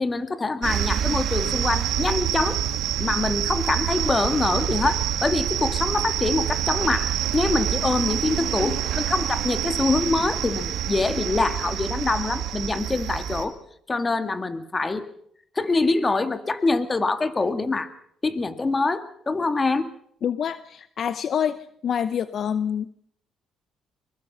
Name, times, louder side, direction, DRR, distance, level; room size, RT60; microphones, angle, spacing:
voice 1, 0.0-2.6 3.0-13.5 13.9-15.1 15.6-17.9 18.2-19.9, left 3 dB, 25° left, 10 dB, 2.0 m, -25 dB
sound 1, 0.6-13.4, right 10 dB, 75° right, 2.3 m, -27 dB
voice 2, 20.2-21.6 21.8-22.9, left 8 dB, 60° left, 14 dB, 0.7 m, -26 dB
23.5 x 22.0 x 5.7 m, 0.68 s
supercardioid pair, 75°, 0 cm